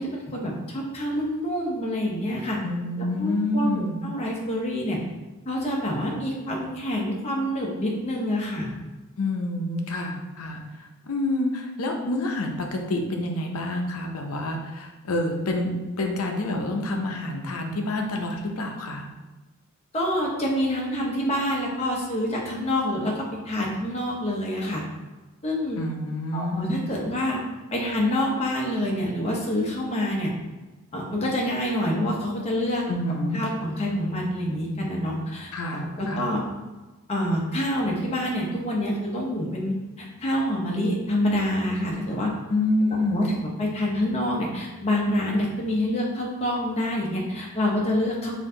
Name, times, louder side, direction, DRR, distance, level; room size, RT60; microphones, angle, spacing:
voice 1, 0.0-2.6 3.0-5.0 5.5-8.7 19.9-24.8 25.4-25.8 26.3-27.4 27.7-30.3 30.9-32.8 33.3-35.5 36.0-36.4 37.1-42.3 43.1-43.3 43.6-48.3, left 1 dB, 30° left, -3 dB, 0.8 m, -27 dB
voice 2, 2.6-4.0 9.2-10.6 11.1-19.1 25.8-26.8 32.9-33.4 35.5-36.3 42.5-43.3, left 1 dB, 85° left, 2 dB, 0.6 m, -27 dB
4.4 x 2.7 x 3.8 m, 1.2 s
head